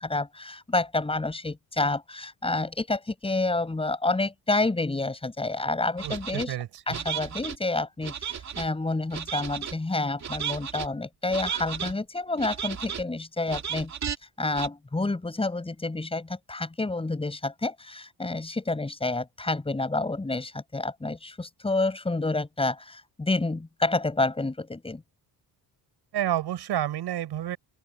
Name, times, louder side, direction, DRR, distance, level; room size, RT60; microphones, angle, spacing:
voice 1, 0.0-6.6 6.9-13.9 14.4-25.0, left 2 dB, 15° left, 7.1 m, -29 dB
sound 1, 6.0-6.4 6.9-7.6 8.0-8.7 9.1-9.7 10.2-10.9 11.3-11.9 12.4-13.0 13.5-14.2 14.5-14.7, right 8 dB, 45° right, 2.4 m, -34 dB
voice 2, 6.0-6.7 26.1-27.6, right 12 dB, 80° right, 6.1 m, -29 dB
open air
cardioid pair, 165°, 40 cm